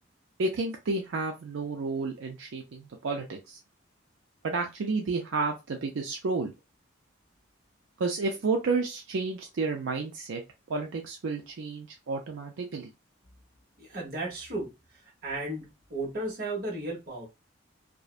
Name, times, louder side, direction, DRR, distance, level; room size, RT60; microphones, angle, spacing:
voice 1, 0.4-3.6 4.4-6.5 8.0-10.4 10.7-12.9, right 3 dB, 80° right, 0.4 m, -31 dB
voice 2, 13.8-14.7 15.2-17.3, right 2 dB, 50° right, 1.0 m, -34 dB
2.5 x 2.1 x 2.4 m
head